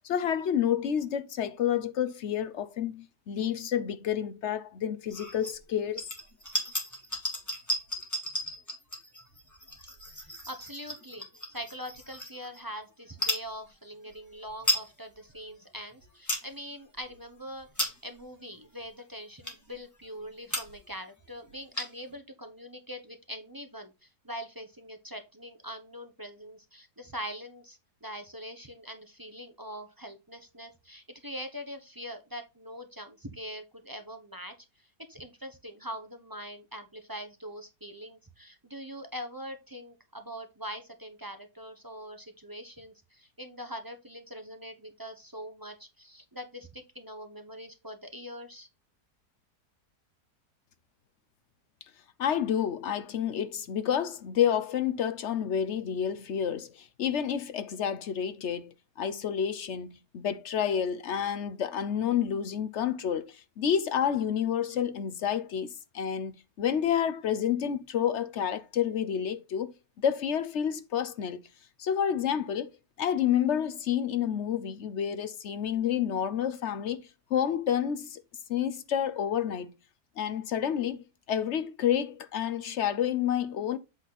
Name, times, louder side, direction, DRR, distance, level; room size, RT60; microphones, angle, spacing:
voice 1, 0.0-6.0 52.2-66.3 66.6-69.7 70.0-71.4 71.8-72.7 73.0-78.2 78.5-79.7 80.2-83.8, left 9 dB, 60° left, 0.8 m, -29 dB
sound 1, 5.1-5.6 5.9-12.6 13.1-13.5 14.1-14.2 14.4-14.9 15.3-15.4 15.9-16.5 17.0-17.1 17.6-18.2 18.8-18.9 19.4-19.8 20.2-20.3 20.5-20.9 21.2-21.3 21.5-22.1, equal, 10° left, 1.9 m, -34 dB
voice 2, 10.2-48.7, equal, 20° right, 0.7 m, -43 dB
8.1 x 4.1 x 4.1 m
omnidirectional pair, 1.8 m